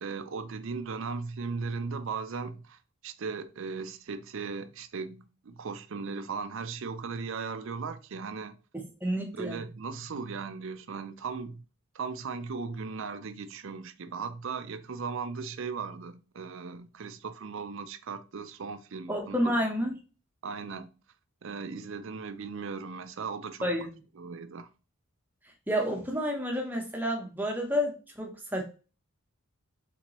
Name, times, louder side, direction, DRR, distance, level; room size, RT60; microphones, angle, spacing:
voice 1, 0.0-8.6 9.3-11.6 11.9-19.4 20.4-20.9 21.4-23.7 24.2-24.7, right 5 dB, 55° right, 0.5 m, -37 dB
voice 2, 8.7-9.6 19.1-19.9 23.6-23.9 25.7-28.6, equal, 10° right, 0.9 m, -30 dB
4.4 x 3.8 x 3.0 m
head